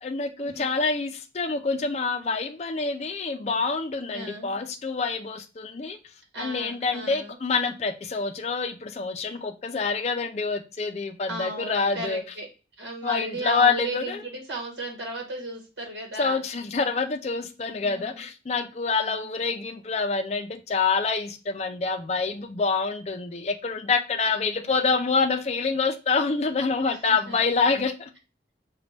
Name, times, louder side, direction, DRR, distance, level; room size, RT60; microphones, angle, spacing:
voice 1, 0.0-6.0 6.4-12.2 13.0-14.2 16.2-28.1, left 4 dB, 35° left, 0.4 m, -26 dB
voice 2, 4.1-4.5 6.3-7.4 11.3-12.5 12.8-16.4 17.8-18.2 18.9-19.3 24.2-24.7 26.9-27.4, right 2 dB, 75° right, 1.1 m, -36 dB
5.0 x 2.2 x 3.2 m
head